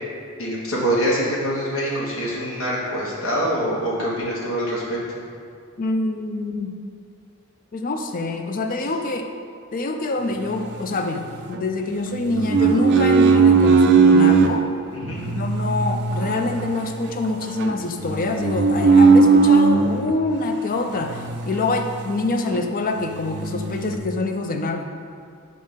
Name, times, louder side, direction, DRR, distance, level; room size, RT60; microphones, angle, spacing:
voice 1, 0.4-5.0 15.1-15.2, equal, 85° left, -6 dB, 1.3 m, -24 dB
voice 2, 5.8-6.8 7.7-9.3 9.7-14.7 15.3-24.8, left 2 dB, 40° left, 5 dB, 0.5 m, -25 dB
sound 1, 10.4-11.6 12.1-14.5 15.1-20.2 21.0-22.2 22.5-22.6 23.0-24.0, right 4 dB, 55° right, 0.4 m, -18 dB
5.2 x 3.8 x 5.6 m, 2.3 s
head